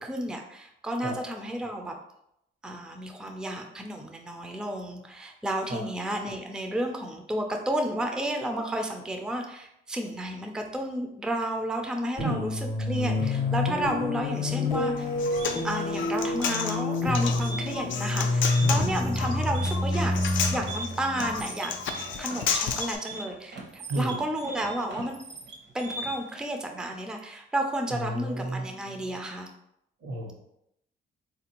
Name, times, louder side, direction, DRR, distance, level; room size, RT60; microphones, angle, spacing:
voice 1, 0.0-1.9 2.6-12.5 12.8-15.1 15.6-20.1 20.5-21.7 22.2-25.2 25.7-29.5, right 1 dB, 5° right, 3 dB, 0.4 m, -32 dB
sound 1, 12.2-22.1, left 2 dB, 40° left, 0.7 m, -28 dB
voice 2, 12.2-12.5 18.6-18.9 23.9-24.2 27.9-28.7 30.0-30.3, right 1 dB, 80° right, -1 dB, 1.2 m, -31 dB
Human voice, 15.0-23.0, left 6 dB, 75° left, 0.4 m, -32 dB
sound 2, 15.2-26.4, right 2 dB, 60° right, 0.8 m, -40 dB
3.5 x 2.5 x 2.9 m, 0.78 s
cardioid pair, 90°, 20 cm